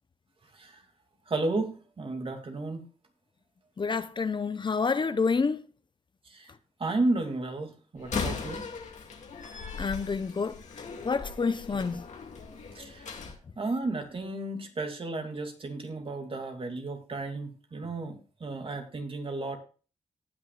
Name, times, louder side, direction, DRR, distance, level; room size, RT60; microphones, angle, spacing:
voice 1, 1.3-2.8 6.3-6.5 6.8-8.7 11.7-11.8 12.7-13.1 13.6-19.6, right 2 dB, 50° right, 2.6 m, -33 dB
voice 2, 3.8-5.6 9.8-10.6 11.0-12.0, left 5 dB, 40° left, 0.7 m, -28 dB
Slam, 8.0-13.4, left 5 dB, 80° left, 2.1 m, -38 dB
18.5 x 6.3 x 2.4 m
cardioid pair, 75°, 12 cm